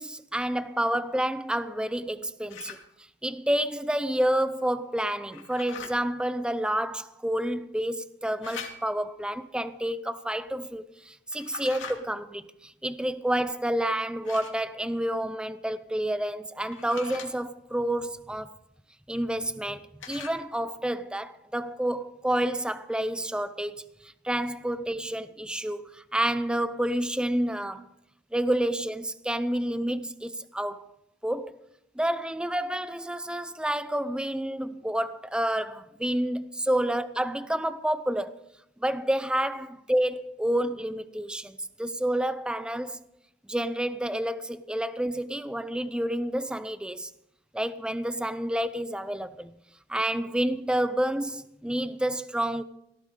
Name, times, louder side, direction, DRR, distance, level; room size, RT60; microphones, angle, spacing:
voice 1, 0.0-2.8 3.2-18.6 19.1-27.9 28.3-30.9 31.2-31.6 32.0-38.4 38.8-43.0 43.5-47.1 47.5-49.5 49.9-52.6, right 1 dB, 5° right, 0.4 m, -29 dB
sound 1, 2.5-2.8 5.3-5.9 8.4-9.1 11.3-12.0 14.2-14.6 16.6-17.3 20.0-20.4, left 5 dB, 80° left, 2.6 m, -41 dB
18.0 x 14.5 x 3.8 m
head